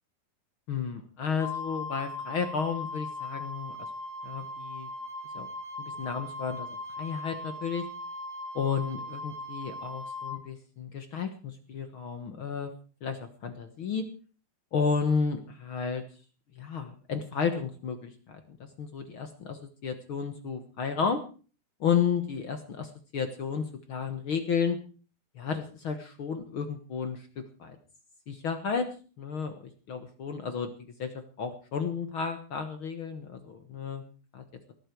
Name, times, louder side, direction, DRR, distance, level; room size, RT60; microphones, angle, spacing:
voice 1, 0.7-3.8 4.2-4.9 5.3-5.5 5.8-6.7 7.0-7.8 8.5-12.7 13.0-14.0 14.7-16.0 16.5-21.2 21.8-24.8 25.3-27.8 28.3-28.8 29.2-30.7 31.0-34.0 34.3-34.4, left 6 dB, 60° left, 8 dB, 1.4 m, -32 dB
Wind instrument woodwind instrument, 1.4-10.4, left 2 dB, 20° left, 2.5 m, -39 dB
19.0 x 13.5 x 4.6 m, 0.38 s
omnidirectional pair, 4.2 m